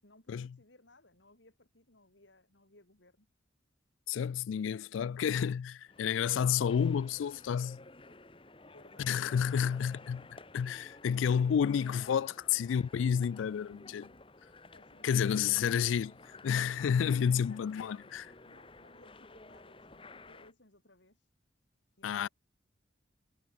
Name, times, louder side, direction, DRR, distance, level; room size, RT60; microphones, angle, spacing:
voice 1, 0.0-3.3 8.1-8.2 8.7-9.5 10.0-10.3 14.7-15.7 17.4-18.1 18.5-21.3 22.0-22.3, left 2 dB, 70° left, 5.8 m, -62 dB
voice 2, 4.1-7.8 9.0-10.2 10.5-14.1 15.0-18.2 22.0-22.3, left 7 dB, 85° left, 0.3 m, -30 dB
sound 1, 5.9-20.5, left 2 dB, 30° left, 2.1 m, -54 dB
head